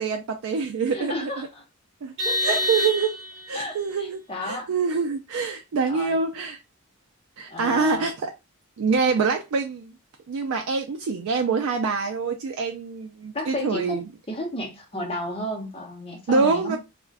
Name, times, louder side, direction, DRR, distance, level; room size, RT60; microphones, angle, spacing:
voice 1, 0.0-1.5 2.0-2.1 2.4-3.1 3.5-6.6 7.4-8.3 8.8-9.9 10.3-14.0 16.3-16.8, right 4 dB, 75° right, 0.4 m, -25 dB
voice 2, 0.9-1.6 2.2-2.6 3.5-4.7 5.9-6.2 7.5-8.1 13.3-14.0 14.3-16.8, left 1 dB, 25° left, 0.8 m, -32 dB
Vehicle horn car horn honking, 2.2-3.6, left 1 dB, 55° right, 1.0 m, -26 dB
2.4 x 2.1 x 3.3 m
head